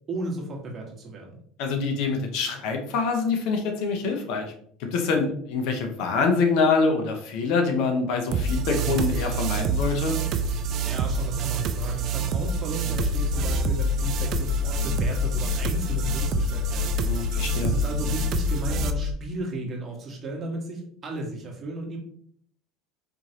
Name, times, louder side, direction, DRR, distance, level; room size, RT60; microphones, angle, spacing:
voice 1, 0.1-1.4 10.8-17.0 17.6-22.0, right 2 dB, 35° right, -1 dB, 1.4 m, -34 dB
voice 2, 1.6-4.5 4.8-10.2 17.0-17.7, left 4 dB, 65° left, 4 dB, 0.8 m, -25 dB
sound 1, 8.3-18.9, right 4 dB, 50° right, 0.4 m, -27 dB
sound 2, 12.9-19.1, left 7 dB, 15° left, 0.5 m, -28 dB
4.4 x 3.1 x 2.8 m, 0.63 s
supercardioid pair, 100°, 0 cm